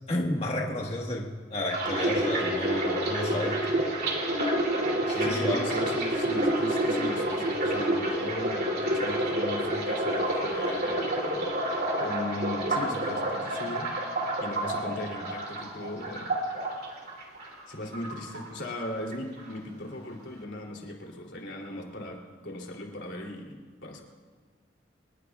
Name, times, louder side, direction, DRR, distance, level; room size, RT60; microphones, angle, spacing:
voice 1, 0.1-3.9 5.1-5.9, left 1 dB, 35° left, -1 dB, 1.5 m, -32 dB
sound 1, 1.7-17.7 17.9-18.9 19.1-19.5, right 1 dB, 55° right, 2.9 m, -29 dB
voice 2, 5.2-11.6 12.0-16.3 17.7-24.0, left 1 dB, 85° left, 0 dB, 2.9 m, -38 dB
27.0 x 20.0 x 2.4 m, 1.5 s
head